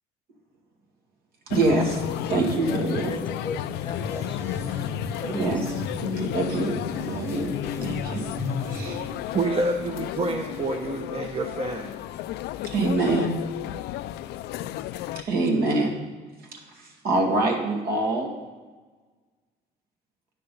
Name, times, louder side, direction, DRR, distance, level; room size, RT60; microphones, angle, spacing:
sound 1, 1.5-15.2, left 13 dB, 80° left, 0.4 m, -32 dB
voice 1, 1.5-2.0 2.3-3.1 5.3-5.7 6.0-7.6 7.8-8.2 8.7-9.0 12.6-13.3 15.3-16.0 16.8-18.3, right 2 dB, 65° right, 1 dB, 2.2 m, -25 dB
sound 2, 1.8-9.3, right 1 dB, 15° right, 1.2 m, -37 dB
voice 2, 2.6-4.6 5.2-5.5, left 3 dB, 30° left, 8 dB, 0.9 m, -37 dB
voice 3, 8.9-12.0, right 2 dB, 35° right, 1 dB, 0.9 m, -28 dB
9.8 x 6.6 x 5.4 m, 1.4 s
cardioid pair, 110°, 17 cm